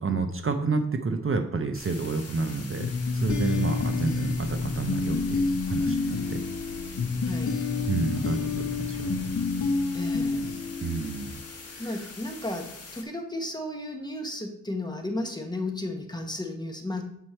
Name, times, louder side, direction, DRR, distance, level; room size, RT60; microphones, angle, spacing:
voice 1, 0.0-5.4 5.7-6.4 7.9-9.3 10.8-11.4 11.7-12.1, right 4 dB, 40° right, 6 dB, 0.7 m, -29 dB
sound 1, 1.7-13.0, left 4 dB, 50° left, 1.3 m, -44 dB
sound 2, 2.8-11.5, left 4 dB, 65° left, 0.9 m, -29 dB
voice 2, 7.2-7.6 9.9-10.4 11.8-17.0, left 1 dB, 15° left, 3 dB, 1.1 m, -34 dB
8.1 x 4.4 x 4.4 m, 0.72 s
wide cardioid pair, 100°, 32 cm